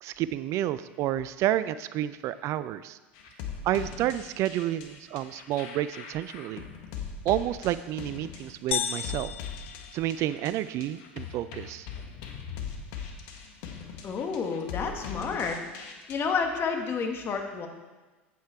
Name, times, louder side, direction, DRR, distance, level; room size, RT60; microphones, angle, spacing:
voice 1, 0.0-3.0 3.6-6.6 7.2-9.3 9.9-11.9, right 13 dB, 50° right, 15 dB, 0.4 m, -30 dB
sound 1, 3.2-16.1, left 6 dB, 60° left, 1.3 m, -41 dB
sound 2, 8.7-10.7, left 9 dB, 80° left, 0.3 m, -34 dB
voice 2, 14.0-15.6 16.1-17.7, left 5 dB, 35° left, 4 dB, 1.5 m, -30 dB
8.5 x 8.3 x 4.7 m, 1.2 s
hypercardioid pair, 75°, 7 cm